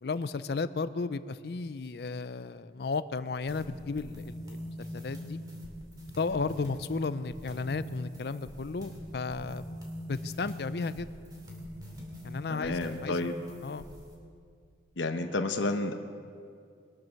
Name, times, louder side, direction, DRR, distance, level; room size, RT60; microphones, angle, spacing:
voice 1, 0.0-5.4 6.2-9.6 10.1-11.1 12.2-13.2 13.6-13.8, left 4 dB, 60° left, 14 dB, 0.5 m, -34 dB
sound 1, 3.5-14.1, equal, 20° right, 2.4 m, -43 dB
voice 2, 12.5-13.4 15.0-16.0, left 2 dB, 90° left, 6 dB, 0.9 m, -30 dB
22.5 x 7.6 x 6.4 m, 2.3 s
head